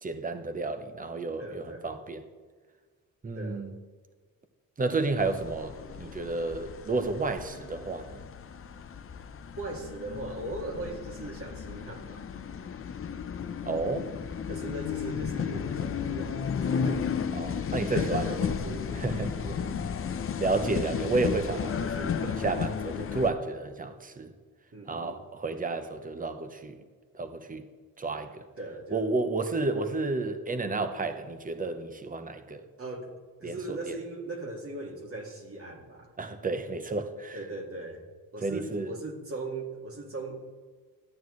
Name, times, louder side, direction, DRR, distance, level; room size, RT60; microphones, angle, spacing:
voice 1, 0.0-2.2 3.2-3.8 4.8-8.2 13.6-14.1 17.4-18.3 18.9-19.4 20.4-24.3 24.9-26.8 27.1-27.6 28.0-28.4 28.9-32.6 33.4-34.0 36.2-37.4 38.4-38.9, right 3 dB, 25° right, 0.9 m, -31 dB
voice 2, 1.4-1.9 3.3-3.6 9.6-12.3 14.5-17.1 17.7-19.8 24.7-25.2 28.6-29.1 32.8-33.1 33.4-36.1 37.3-38.0 38.3-40.4, right 2 dB, 40° right, 2.0 m, -39 dB
sound 1, 5.2-23.3, left 7 dB, 40° left, 0.6 m, -34 dB
13.0 x 9.1 x 3.1 m
cardioid pair, 110°, 34 cm